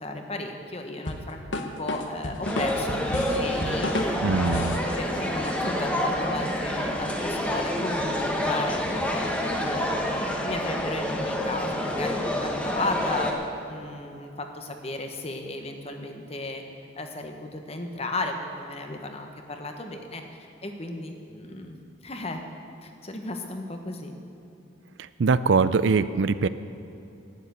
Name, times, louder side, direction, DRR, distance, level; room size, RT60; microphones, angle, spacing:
voice 1, 0.0-9.3 9.7-13.3 13.7-16.6 17.0-20.2 20.6-21.8 22.0-22.4 22.8-24.2, left 2 dB, 30° left, 5 dB, 1.2 m, -34 dB
sound 1, 1.1-4.9, left 2 dB, 70° left, 1.1 m, -32 dB
sound 2, 2.4-13.3, left 1 dB, 5° left, 1.2 m, -28 dB
voice 2, 4.2-4.8 25.2-26.5, right 4 dB, 70° right, 14 dB, 0.4 m, -22 dB
12.0 x 10.0 x 8.2 m, 2.8 s
head